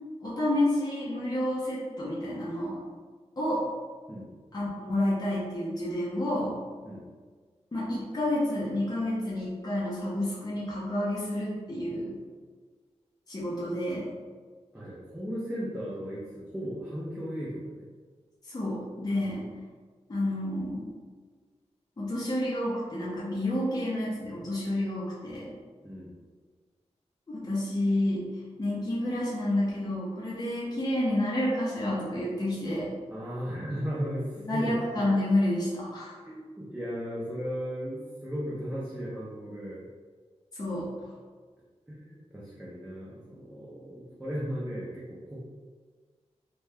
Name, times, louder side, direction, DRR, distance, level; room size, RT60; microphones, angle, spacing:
voice 1, 0.2-2.8 3.4-3.7 4.5-6.6 7.7-12.2 13.3-14.1 18.4-19.5 20.1-20.9 22.0-25.6 27.3-28.3 28.6-32.9 34.5-36.1 40.6-40.9, left 1 dB, 35° left, -7 dB, 0.6 m, -29 dB
voice 2, 14.7-17.8 19.2-19.4 25.8-26.2 33.1-35.1 36.2-39.8 41.9-45.4, equal, 10° right, -8 dB, 0.5 m, -36 dB
2.7 x 2.3 x 3.2 m, 1.5 s
wide cardioid pair, 120°, 12 cm